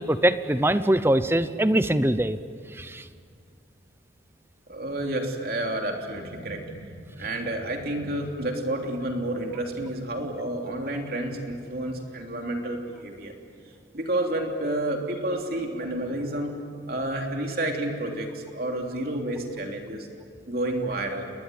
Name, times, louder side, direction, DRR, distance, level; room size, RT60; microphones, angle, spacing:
voice 1, 0.0-2.4 2.7-3.0, right 1 dB, 10° right, 12 dB, 0.8 m, -22 dB
voice 2, 4.7-13.3 13.9-16.5 16.9-20.1 20.5-21.3, right 1 dB, 55° right, 2 dB, 3.2 m, -30 dB
29.5 x 21.0 x 9.3 m, 2.2 s
head